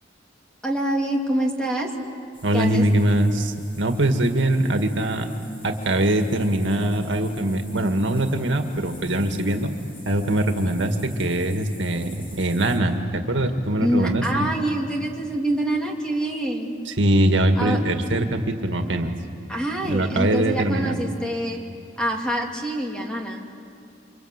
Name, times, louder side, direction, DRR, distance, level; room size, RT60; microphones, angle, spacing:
voice 1, 0.6-1.9 2.5-2.8 13.8-16.7 17.6-17.8 19.5-21.6 22.0-23.5, right 1 dB, 5° left, 0 dB, 2.6 m, -25 dB
sound 1, 2.3-12.8, left 1 dB, 30° left, 5.2 m, -48 dB
voice 2, 2.4-5.3 5.6-9.7 10.0-14.5 16.9-19.1 19.8-21.0, right 1 dB, 80° right, 5 dB, 1.9 m, -22 dB
28.5 x 25.5 x 8.2 m, 2.4 s
head